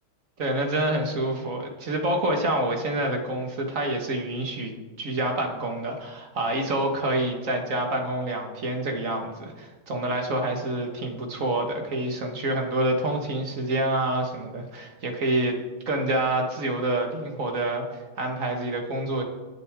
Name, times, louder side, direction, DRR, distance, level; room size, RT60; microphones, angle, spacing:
voice 1, 0.4-4.7 5.0-15.6 15.9-19.2, right 1 dB, 40° right, 3 dB, 1.9 m, -27 dB
21.5 x 8.0 x 3.7 m, 1.3 s
omnidirectional pair, 2.2 m